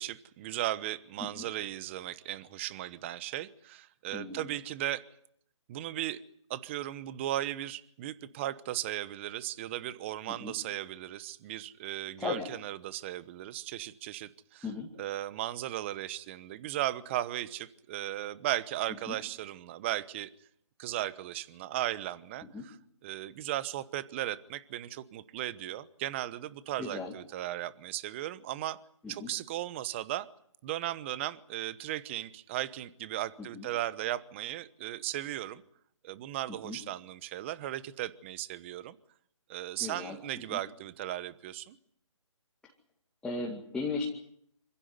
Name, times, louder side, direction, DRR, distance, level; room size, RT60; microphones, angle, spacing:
voice 1, 0.0-5.0 5.7-6.2 6.5-14.6 15.0-20.3 20.8-22.7 23.0-28.8 29.1-30.3 30.6-35.6 36.0-39.0 39.5-41.8, right 14 dB, 25° right, 1.0 m, -36 dB
voice 2, 4.1-4.5 10.3-10.5 12.2-12.5 14.6-14.9 19.1-19.2 22.5-22.7 26.8-27.1 29.0-29.3 33.4-33.7 36.5-36.8 39.8-40.2 40.5-40.6 43.2-44.0, left 4 dB, 5° left, 2.3 m, -37 dB
26.5 x 16.0 x 9.6 m
hypercardioid pair, 155°, 17 cm